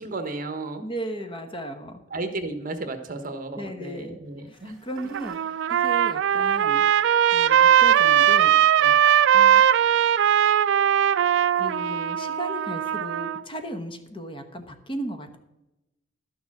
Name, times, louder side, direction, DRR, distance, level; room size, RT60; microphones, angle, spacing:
voice 1, 0.0-0.9 2.1-4.8 8.8-8.9, right 2 dB, 45° right, 8 dB, 1.2 m, -33 dB
voice 2, 0.8-2.0 3.6-4.2 4.5-8.9 9.3-9.6 11.5-15.4, right 1 dB, 25° left, 6 dB, 1.1 m, -36 dB
sound 1, 4.5-10.0, right 4 dB, 5° right, 2.4 m, -48 dB
Trumpet, 5.0-13.4, right 10 dB, 65° right, 0.3 m, -20 dB
12.0 x 7.1 x 6.0 m, 0.96 s
head